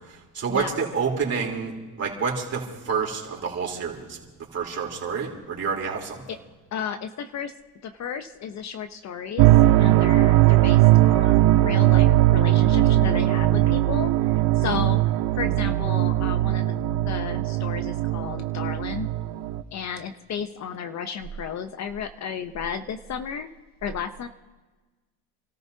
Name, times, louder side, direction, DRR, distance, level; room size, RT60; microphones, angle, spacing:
voice 1, 0.1-4.2 4.5-6.2, right 5 dB, 35° right, -1 dB, 3.4 m, -28 dB
voice 2, 6.7-7.5 7.8-9.5 9.8-15.0 15.4-19.1 19.7-23.5 23.8-24.3, left 7 dB, 40° left, 9 dB, 0.7 m, -33 dB
sound 1, 9.4-19.6, right 15 dB, 60° right, 0.7 m, -19 dB
29.5 x 14.0 x 2.7 m, 1.3 s
supercardioid pair, 105°, 41 cm